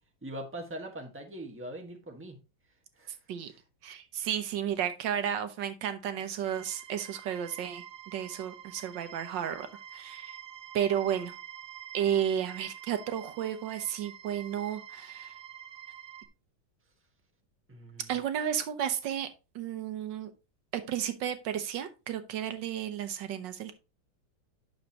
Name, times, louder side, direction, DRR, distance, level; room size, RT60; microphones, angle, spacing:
voice 1, 0.2-2.4 3.0-3.1 3.5-3.6 17.7-18.2, right 1 dB, 10° right, 3 dB, 1.2 m, -42 dB
voice 2, 3.8-9.7 9.9-10.3 10.7-11.3 11.9-15.3 18.1-19.3 19.5-20.3 20.7-23.7, right 9 dB, 85° right, 10 dB, 1.6 m, -32 dB
sound 1, 6.4-16.3, right 9 dB, 60° right, 1.0 m, -47 dB
9.3 x 6.3 x 2.9 m, 0.28 s
omnidirectional pair, 1.9 m